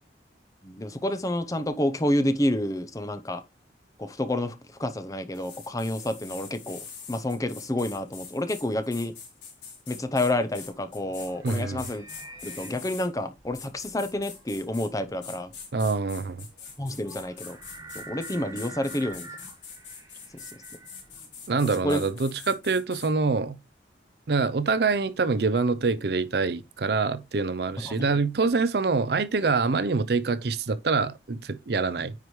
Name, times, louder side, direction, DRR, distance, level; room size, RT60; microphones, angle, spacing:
voice 1, 0.6-3.4 4.0-9.1 9.9-12.0 12.4-15.5 16.8-17.6 17.9-19.3 20.3-20.4 21.8-22.0 27.8-28.1, left 1 dB, 20° left, 0.6 m, -29 dB
sound 1, 5.3-13.1 13.5-14.9 15.2-23.1, left 6 dB, 80° left, 3.9 m, -44 dB
sound 2, 10.1-21.6, right 2 dB, 20° right, 1.5 m, -47 dB
voice 2, 11.4-11.8 15.7-16.5 21.5-23.6 24.3-32.1, right 4 dB, 60° right, 0.5 m, -25 dB
9.5 x 4.8 x 3.1 m
head